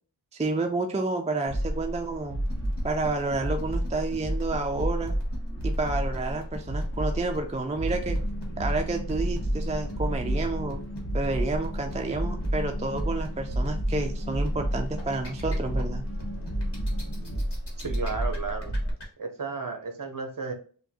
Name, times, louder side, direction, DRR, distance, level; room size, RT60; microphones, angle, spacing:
voice 1, 0.3-2.4 2.8-5.1 5.6-8.2 8.6-10.8 11.1-16.0, right 3 dB, 15° right, 4 dB, 0.3 m, -30 dB
sound 1, 1.5-18.9, equal, 25° left, 1.1 m, -31 dB
sound 2, 2.5-19.0, left 1 dB, 55° left, 1.2 m, -43 dB
sound 3, 7.8-17.4, equal, 85° left, 1.0 m, -38 dB
voice 2, 17.8-18.7 19.2-20.5, right 4 dB, 45° right, 4 dB, 0.8 m, -33 dB
3.6 x 2.3 x 2.7 m, 0.43 s
wide cardioid pair, 45°, 47 cm